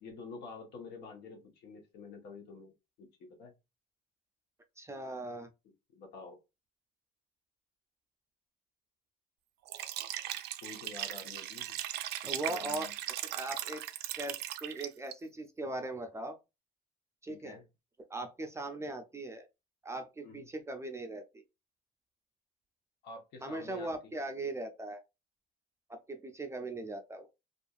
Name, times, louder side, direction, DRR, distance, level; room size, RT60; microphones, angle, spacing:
voice 1, 0.0-2.7 3.0-3.5 5.9-6.4 10.6-11.8 12.5-12.9 17.3-17.6 20.2-20.5 23.0-23.9, left 4 dB, 80° left, 1.1 m, -48 dB
voice 2, 4.8-5.5 12.2-12.9 13.2-13.8 14.2-16.3 17.2-17.6 18.1-19.5 19.8-21.4 23.4-25.0 25.9-27.3, right 2 dB, 15° right, 0.4 m, -39 dB
Liquid, 9.7-15.1, right 13 dB, 75° right, 0.4 m, -38 dB
2.6 x 2.4 x 2.3 m
cardioid pair, 110°, 17 cm